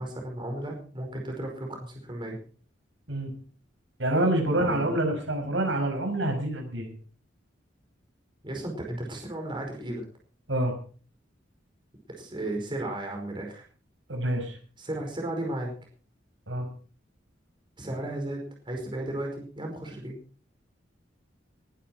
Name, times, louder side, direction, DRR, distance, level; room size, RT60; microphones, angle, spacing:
voice 1, 0.0-2.4 4.6-4.9 8.4-10.1 12.1-13.6 14.8-15.7 17.8-20.2, right 1 dB, 25° right, 1 dB, 5.1 m, -34 dB
voice 2, 4.0-6.9 10.5-10.8 14.1-14.6 16.5-16.7, right 1 dB, 80° right, 5 dB, 5.8 m, -27 dB
21.0 x 11.5 x 4.6 m, 0.41 s
head